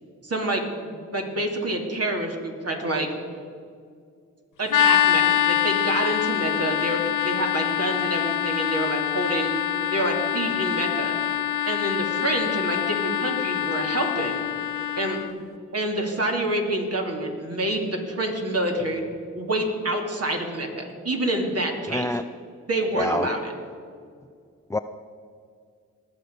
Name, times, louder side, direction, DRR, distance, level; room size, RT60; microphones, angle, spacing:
voice 1, 0.2-3.1 4.6-9.5 9.9-11.1 11.7-14.4 15.0-15.4 15.7-19.0 19.3-22.0 22.7-23.4, right 1 dB, 45° right, 1 dB, 2.7 m, -27 dB
sound 1, 4.7-15.3, left 10 dB, 70° left, 0.8 m, -25 dB
voice 2, 21.9-22.3 22.9-23.3 24.7-24.8, left 2 dB, 10° left, 10 dB, 0.5 m, -26 dB
20.0 x 6.8 x 5.3 m, 2.2 s
supercardioid pair, 40°, 33 cm